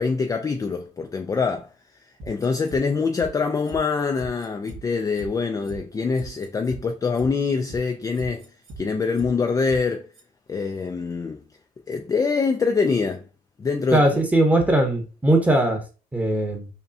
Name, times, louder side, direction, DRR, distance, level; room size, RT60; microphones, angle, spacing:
voice 1, 0.0-1.7 2.2-8.4 8.8-10.1 10.5-11.4 11.9-13.2 13.6-14.2, left 4 dB, 20° left, 0.3 m, -24 dB
sound 1, 2.2-2.8 3.1-3.3 3.6-3.8 4.1-4.8 5.1-5.3 5.6-5.8 6.1-6.8 7.1-7.3 7.6-7.8 8.1-8.8 9.1-9.3 9.6-9.8 10.1-10.2, right 2 dB, 80° right, 1.8 m, -40 dB
voice 2, 13.9-15.8 16.1-16.7, right 1 dB, 10° right, 0.9 m, -19 dB
5.3 x 2.2 x 2.6 m
cardioid pair, 110°, 17 cm